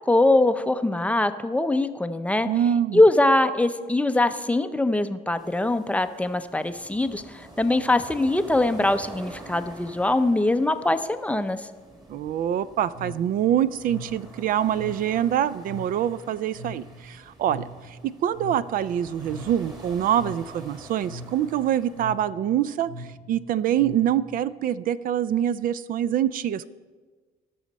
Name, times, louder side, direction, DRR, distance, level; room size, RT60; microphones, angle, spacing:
voice 1, 0.1-2.5 2.9-11.7, left 2 dB, 10° left, 10 dB, 0.5 m, -22 dB
voice 2, 2.5-3.0 12.1-26.7, right 10 dB, 55° right, 16 dB, 0.4 m, -25 dB
sound 1, 5.4-22.1, right 1 dB, 25° right, 2.0 m, -47 dB
sound 2, 12.9-24.5, equal, 75° right, 3.6 m, -42 dB
18.0 x 6.3 x 4.0 m, 1.4 s
cardioid pair, 110°, 17 cm